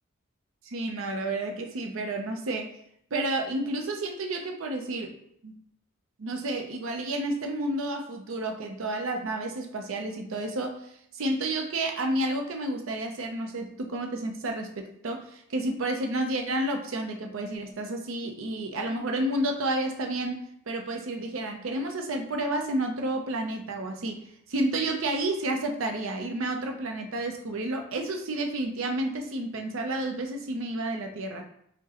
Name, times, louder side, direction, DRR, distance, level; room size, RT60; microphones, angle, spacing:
voice 1, 0.6-2.7 3.1-5.2 5.4-5.6 6.2-10.8 11.1-20.4 20.7-24.2 24.5-31.4, right 1 dB, 75° right, 4 dB, 0.6 m, -30 dB
4.6 x 2.2 x 2.8 m, 0.72 s
head